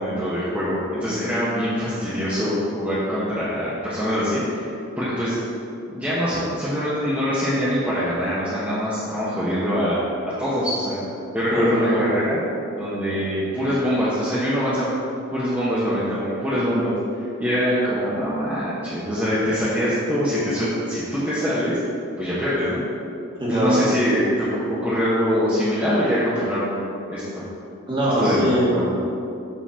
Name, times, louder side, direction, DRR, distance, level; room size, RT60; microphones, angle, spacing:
voice 1, 0.0-4.6 5.0-5.4 5.9-10.0 10.4-11.0 11.3-12.4 12.8-14.9 15.3-16.9 17.4-21.8 22.2-22.8 23.5-26.8 27.1-27.4 28.2-28.9, equal, 10° right, -11 dB, 1.1 m, -23 dB
voice 2, 11.5-12.1 23.4-23.8 27.9-29.0, right 1 dB, 25° right, -6 dB, 1.6 m, -22 dB
7.5 x 4.0 x 5.7 m, 2.6 s
head